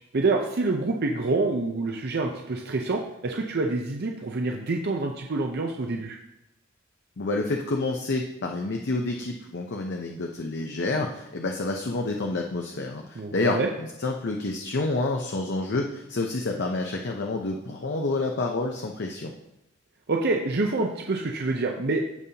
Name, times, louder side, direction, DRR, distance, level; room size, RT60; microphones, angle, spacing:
voice 1, 0.1-6.2 13.2-13.7 20.1-22.1, right 3 dB, 55° right, 2 dB, 0.6 m, -27 dB
voice 2, 7.2-19.3, left 2 dB, 60° left, 2 dB, 0.7 m, -28 dB
15.5 x 5.4 x 2.8 m, 0.90 s
head